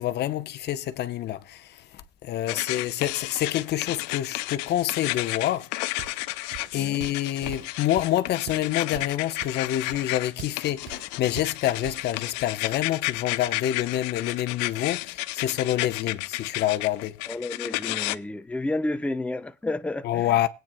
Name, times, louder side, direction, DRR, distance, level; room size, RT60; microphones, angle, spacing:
voice 1, 0.0-1.8 2.2-5.7 6.7-17.1 20.0-20.5, left 12 dB, 55° left, 0.8 m, -27 dB
sound 1, 2.5-18.1, left 20 dB, 85° left, 0.5 m, -32 dB
Walk footsteps, 6.0-6.3 6.5-10.6 10.9-11.1 11.4-12.1, right 11 dB, 70° right, 1.0 m, -41 dB
voice 2, 17.3-20.5, left 2 dB, 5° left, 0.7 m, -31 dB
20.5 x 9.1 x 2.2 m
supercardioid pair, 85°, 20 cm